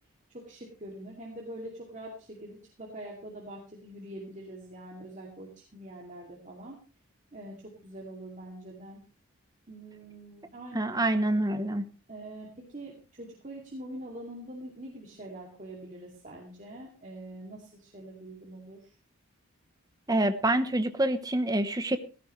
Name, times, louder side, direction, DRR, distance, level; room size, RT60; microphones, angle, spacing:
voice 1, 0.3-6.8 7.3-9.0 9.7-11.0 12.1-18.9, right 1 dB, 35° right, -2 dB, 2.5 m, -44 dB
voice 2, 10.7-11.9 20.1-22.0, right 1 dB, 15° right, 10 dB, 0.9 m, -26 dB
16.0 x 14.5 x 3.2 m, 0.36 s
head